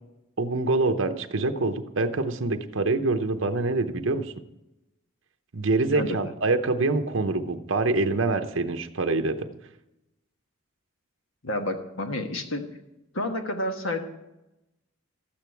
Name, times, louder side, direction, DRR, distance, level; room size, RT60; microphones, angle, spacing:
voice 1, 0.4-4.3 5.5-9.5, right 3 dB, 65° right, 6 dB, 0.8 m, -25 dB
voice 2, 5.9-6.3 11.4-12.6 13.1-14.0, left 1 dB, 75° left, 5 dB, 1.4 m, -30 dB
12.5 x 8.8 x 4.6 m, 0.93 s
head